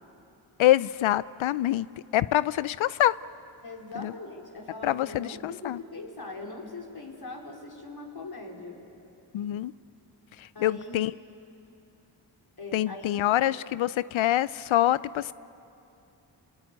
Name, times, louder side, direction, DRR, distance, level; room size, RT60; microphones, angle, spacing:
voice 1, 0.6-1.9 2.1-3.2 4.0-4.1 4.8-5.8 9.3-9.7 10.4-11.1 12.7-15.3, left 13 dB, 75° left, 18 dB, 0.5 m, -25 dB
voice 2, 3.6-8.8 10.5-11.0 12.6-13.6, left 2 dB, 50° left, 0 dB, 4.5 m, -41 dB
29.0 x 20.5 x 9.4 m, 2.8 s
cardioid pair, 40°, 47 cm